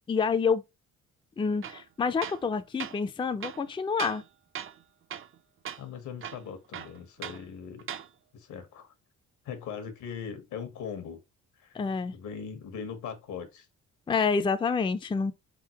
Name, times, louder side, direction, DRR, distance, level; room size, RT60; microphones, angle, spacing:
voice 1, 0.1-0.6 1.4-4.2 11.7-12.1 14.1-15.3, left 5 dB, 15° left, 0.4 m, -28 dB
Tools, 1.6-1.8 2.2-2.5 2.8-3.0 3.4-4.3 4.6-4.8 5.1-5.4 5.7-5.8 6.2-7.4 7.8-8.1, right 9 dB, 45° right, 0.6 m, -39 dB
voice 2, 5.8-7.9 8.3-8.9 9.4-11.2 11.6-11.8 12.1-13.7, left 7 dB, 80° left, 1.2 m, -40 dB
4.1 x 3.8 x 2.8 m
cardioid pair, 90°, 30 cm